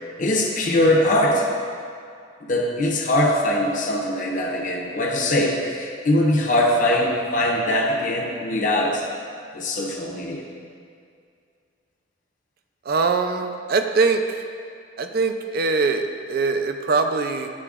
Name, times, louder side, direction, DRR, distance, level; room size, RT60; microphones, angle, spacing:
voice 1, 0.2-1.5 2.4-9.0 9.5-10.5, left 1 dB, 45° left, -2 dB, 0.8 m, -21 dB
voice 2, 12.9-14.2 15.0-17.5, right 4 dB, 55° right, 6 dB, 0.4 m, -22 dB
10.5 x 4.4 x 2.4 m, 2.3 s
head